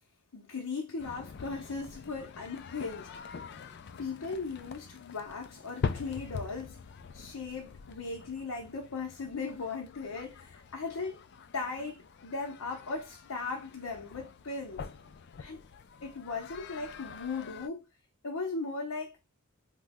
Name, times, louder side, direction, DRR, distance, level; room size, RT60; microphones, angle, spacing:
voice 1, 0.3-3.1 4.0-6.8 7.1-11.2 11.5-14.9 15.4-15.6 16.0-17.9 18.2-19.2, left 4 dB, 80° left, 0.7 m, -38 dB
sound 1, 1.0-17.7, left 5 dB, 50° left, 0.3 m, -44 dB
3.1 x 2.1 x 3.4 m
head